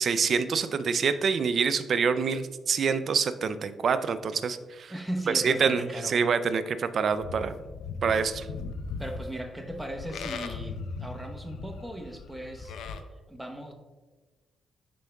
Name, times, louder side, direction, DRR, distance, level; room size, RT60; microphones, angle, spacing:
voice 1, 0.0-4.9 5.3-7.5 8.0-8.5, right 6 dB, 55° right, 12 dB, 0.4 m, -26 dB
voice 2, 4.9-6.1 9.0-12.7 13.3-13.7, right 1 dB, 5° right, 2 dB, 1.0 m, -37 dB
Livestock farm animals working animals, 7.1-13.0, left 4 dB, 80° left, 0.5 m, -38 dB
11.0 x 4.6 x 2.3 m, 1.3 s
cardioid pair, 75°, 0 cm